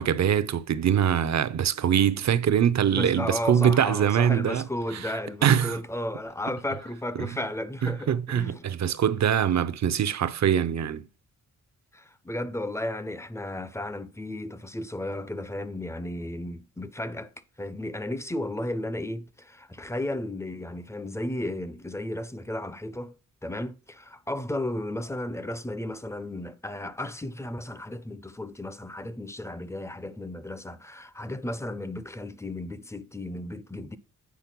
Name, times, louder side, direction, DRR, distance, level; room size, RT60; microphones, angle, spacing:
voice 1, 0.0-4.6 4.9-5.1 5.4-5.8 7.2-7.3 7.8-11.1, right 9 dB, 55° right, 0.7 m, -23 dB
voice 2, 2.9-8.6 11.9-17.3 17.6-23.1 23.4-34.0, left 1 dB, 10° left, 0.5 m, -34 dB
8.4 x 3.9 x 5.9 m
wide cardioid pair, 120°, 33 cm